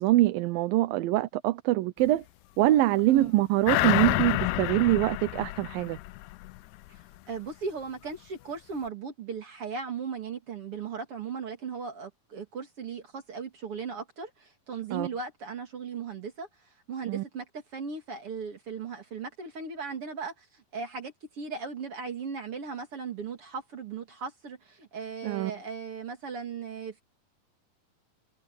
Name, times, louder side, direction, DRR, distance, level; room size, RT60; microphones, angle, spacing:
voice 1, 0.0-2.2 2.6-6.0 14.9-15.1 17.0-17.2 25.2-25.5, right 16 dB, 80° right, 2.6 m, -24 dB
sound 1, 3.7-6.6 6.9-7.0, left 19 dB, 90° left, 1.8 m, -28 dB
voice 2, 7.3-16.5 16.9-27.0, right 5 dB, 45° right, 2.8 m, -37 dB
omnidirectional pair, 4.1 m